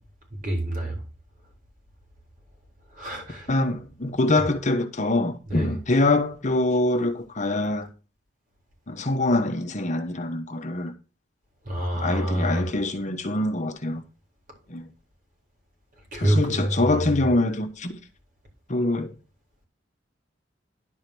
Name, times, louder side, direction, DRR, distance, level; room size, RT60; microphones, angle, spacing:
voice 1, 0.4-1.0 3.0-3.5 5.5-5.7 11.7-12.7 16.1-16.6, right 1 dB, 45° right, 4.0 m, -26 dB
voice 2, 3.5-7.9 8.9-10.9 11.9-14.0 14.7-14.9 16.2-18.0 18.7-19.1, left 2 dB, 40° left, 1.2 m, -24 dB
11.5 x 5.0 x 6.1 m
head